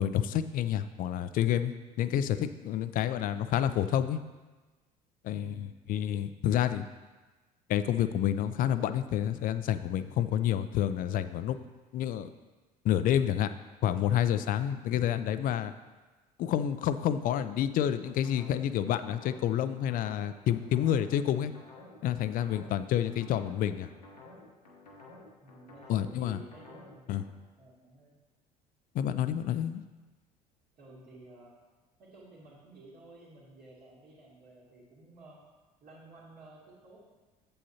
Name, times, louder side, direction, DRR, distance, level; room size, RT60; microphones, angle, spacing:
voice 1, 0.0-4.2 5.2-6.9 7.7-11.6 11.9-12.3 12.8-13.5 13.8-15.7 16.4-21.5 22.0-23.9 25.9-26.4 27.1-27.2 28.9-29.8, left 10 dB, 45° left, 12 dB, 0.4 m, -29 dB
voice 2, 5.3-5.6 25.4-27.1 27.6-28.1 30.8-31.5 32.0-35.4 35.8-37.0, right 2 dB, 45° right, -9 dB, 2.4 m, -53 dB
sound 1, 17.7-27.3, left 2 dB, 90° left, 1.1 m, -52 dB
8.6 x 7.3 x 2.9 m, 1.2 s
figure-of-eight pair, 60°, 20 cm